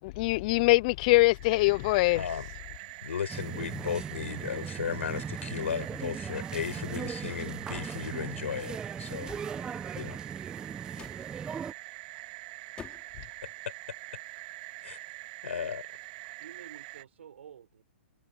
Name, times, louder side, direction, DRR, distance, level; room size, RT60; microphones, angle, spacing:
voice 1, 0.0-2.2, left 22 dB, 40° left, 0.6 m, -23 dB
sound 1, 1.2-17.0, right 22 dB, 40° right, 1.9 m, -45 dB
voice 2, 2.1-2.5 3.0-9.3 10.0-10.2 14.8-15.0 15.4-15.8, left 8 dB, 80° left, 5.4 m, -35 dB
sound 2, 3.3-11.7, right 6 dB, 10° right, 0.9 m, -38 dB
sound 3, 7.7-8.0 9.2-9.5 10.9-11.3 12.8-13.2, left 8 dB, 15° left, 5.9 m, -47 dB
voice 3, 16.4-17.8, right 9 dB, 75° right, 6.0 m, -50 dB
hypercardioid pair, 145°, 7 cm